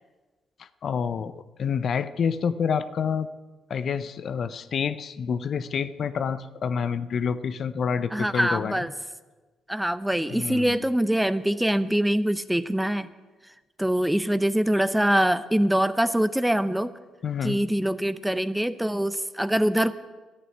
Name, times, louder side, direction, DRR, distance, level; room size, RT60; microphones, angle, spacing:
voice 1, 0.6-3.3 3.7-8.8 10.3-10.8 17.2-17.6, left 6 dB, 55° left, 13 dB, 0.7 m, -28 dB
voice 2, 8.1-8.9 9.7-13.1 13.8-16.9 17.4-19.9, right 1 dB, 5° right, 14 dB, 0.7 m, -24 dB
12.5 x 10.0 x 9.2 m, 1.2 s
cardioid pair, 90°, 0 cm